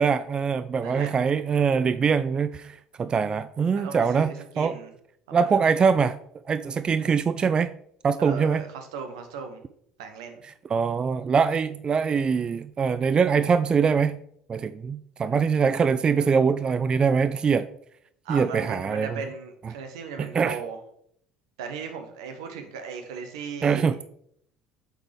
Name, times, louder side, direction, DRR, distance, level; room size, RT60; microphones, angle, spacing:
voice 1, 0.0-4.3 4.6-4.8 5.3-6.2 6.5-7.7 8.0-8.6 10.7-14.2 14.5-17.7 18.3-19.2 20.2-20.6 23.6-24.0, right 6 dB, 30° right, 13 dB, 0.3 m, -23 dB
voice 2, 0.8-1.1 3.7-4.9 5.3-5.7 8.2-9.6 10.0-10.4 18.2-20.8 21.6-24.0, right 6 dB, 80° right, 6 dB, 1.0 m, -37 dB
8.0 x 4.0 x 3.4 m, 0.68 s
hypercardioid pair, 70°, 3 cm